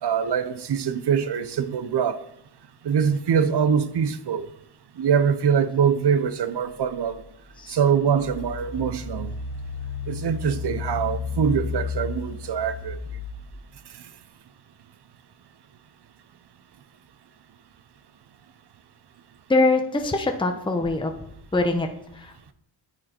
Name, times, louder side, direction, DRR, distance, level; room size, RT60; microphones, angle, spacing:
voice 1, 0.0-2.2 2.8-4.5 5.0-7.2 7.7-9.4 10.1-13.0, right 7 dB, 65° right, 0.8 m, -23 dB
Engine, 7.0-7.1 7.7-13.6, left 5 dB, 65° left, 1.6 m, -33 dB
voice 2, 19.5-21.1 21.5-22.5, left 2 dB, 10° left, 0.9 m, -23 dB
9.5 x 9.0 x 4.4 m
wide cardioid pair, 100°, 44 cm